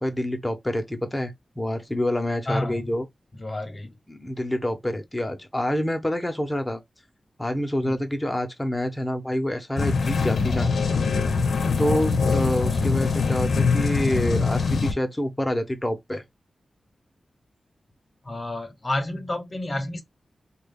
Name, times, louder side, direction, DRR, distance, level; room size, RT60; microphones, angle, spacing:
voice 1, 0.0-3.1 4.1-6.8 7.4-10.7 11.8-16.2, left 1 dB, 15° left, 0.9 m, -27 dB
voice 2, 2.5-2.9 3.3-3.9 7.8-8.0 11.8-12.0 18.2-20.0, left 1 dB, 35° left, 1.1 m, -30 dB
sound 1, 9.8-14.9, left 4 dB, 85° left, 0.7 m, -23 dB
3.1 x 2.4 x 3.4 m
wide cardioid pair, 75°, 0 cm